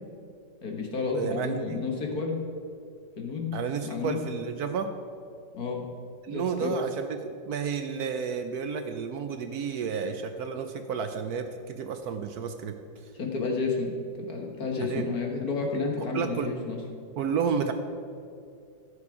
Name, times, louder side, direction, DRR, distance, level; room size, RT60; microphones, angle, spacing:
voice 1, 0.6-2.4 3.2-3.6 3.8-4.2 5.5-5.9 6.3-6.7 13.1-16.8, left 4 dB, 50° left, 1 dB, 1.8 m, -31 dB
voice 2, 1.1-1.8 3.5-4.9 6.2-12.8 14.8-15.1 16.1-16.5 17.2-17.7, right 6 dB, 70° right, 7 dB, 0.9 m, -31 dB
14.5 x 6.9 x 4.9 m, 2.5 s
omnidirectional pair, 2.2 m